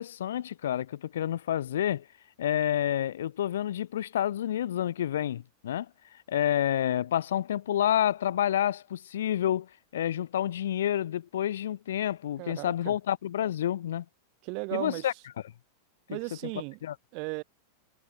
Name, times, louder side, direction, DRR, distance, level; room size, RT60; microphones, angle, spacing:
voice 1, 0.0-2.0 2.4-5.9 6.3-14.0 14.7-15.1 16.1-16.2 16.8-16.9, left 11 dB, 60° left, 2.3 m, -29 dB
voice 2, 12.4-13.0 14.4-15.1 16.1-16.8 17.1-17.4, right 34 dB, 45° right, 2.7 m, -36 dB
figure-of-eight pair, 90°, 0 cm